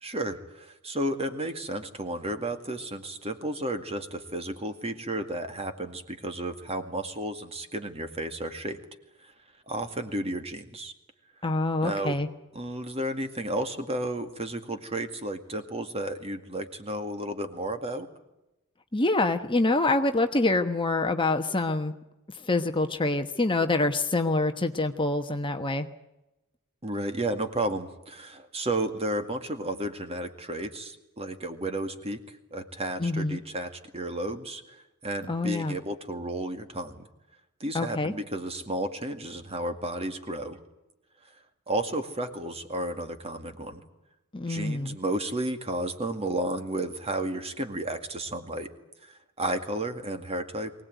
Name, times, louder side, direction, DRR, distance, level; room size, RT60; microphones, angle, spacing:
voice 1, 0.0-8.8 9.2-9.3 9.7-10.9 11.8-12.2 12.5-18.1 26.8-37.1 37.6-40.6 41.7-43.8 44.5-48.7 49.0-49.1 49.4-50.8, right 1 dB, 30° right, 7 dB, 2.1 m, -32 dB
voice 2, 11.4-12.3 18.9-21.9 22.3-25.9 33.0-33.4 35.3-35.8 37.7-38.1 44.3-45.0, left 2 dB, 20° left, 7 dB, 1.2 m, -26 dB
24.0 x 18.5 x 9.3 m, 0.94 s
head